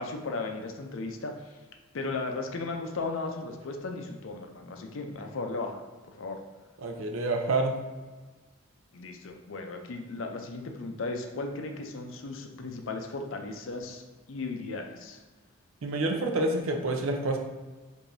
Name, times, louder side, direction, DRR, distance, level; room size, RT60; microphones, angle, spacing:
voice 1, 0.0-1.6 1.9-5.8 6.1-6.4 8.9-14.0 14.3-15.2, left 3 dB, 65° left, 4 dB, 0.5 m, -36 dB
voice 2, 6.8-7.8 15.8-17.4, right 2 dB, 70° right, 3 dB, 0.5 m, -28 dB
4.7 x 2.6 x 2.6 m, 1.3 s
head